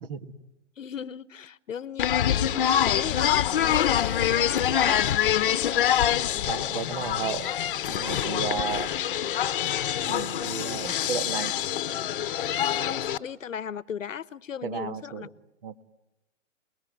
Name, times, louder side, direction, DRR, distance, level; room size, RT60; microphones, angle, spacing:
voice 1, 0.0-0.3 6.5-7.5 7.9-8.9 10.0-11.5 14.6-15.3 15.6-15.9, right 6 dB, 45° right, 11 dB, 1.8 m, -33 dB
voice 2, 0.8-2.7 2.9-6.5 8.3-8.4 12.8-15.3, left 8 dB, 90° left, 18 dB, 1.0 m, -37 dB
sound 1, 2.0-13.2, left 10 dB, 45° left, 1.0 m, -25 dB
29.0 x 21.0 x 9.4 m, 0.95 s
hypercardioid pair, 155°, 37 cm